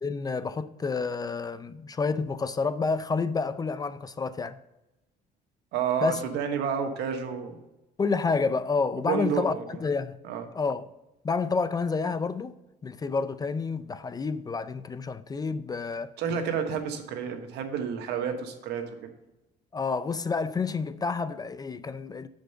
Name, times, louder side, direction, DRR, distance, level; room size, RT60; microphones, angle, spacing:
voice 1, 0.0-4.6 6.0-6.2 8.0-10.2 10.5-10.9 11.2-12.5 12.8-16.1 19.7-22.3, left 4 dB, 25° left, 0.4 m, -29 dB
voice 2, 5.7-7.6 9.0-9.6 10.2-10.5 16.2-19.1, right 7 dB, 85° right, 1.3 m, -30 dB
7.5 x 5.2 x 6.7 m
cardioid pair, 110°, 17 cm